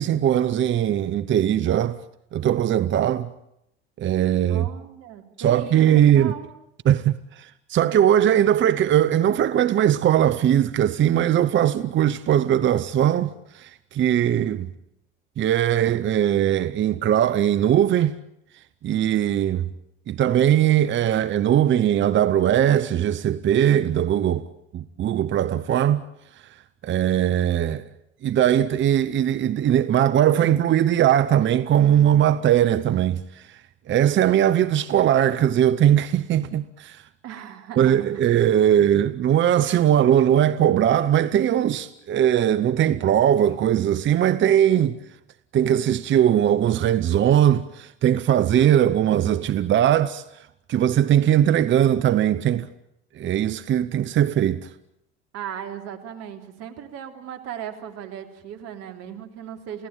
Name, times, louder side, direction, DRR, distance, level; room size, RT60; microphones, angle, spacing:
voice 1, 0.0-2.0 2.3-3.3 4.0-4.7 5.4-6.3 6.8-14.7 15.4-18.1 18.8-19.7 20.1-24.5 24.7-26.1 26.8-27.8 28.2-33.6 33.9-37.0 37.8-45.0 45.5-50.2 50.7-52.7 53.2-54.7, right 10 dB, 40° right, 1.0 m, -20 dB
voice 2, 4.5-6.5 37.2-38.0 55.3-59.9, right 9 dB, 55° right, 3.6 m, -37 dB
29.5 x 17.5 x 9.2 m
hypercardioid pair, 75°, 31 cm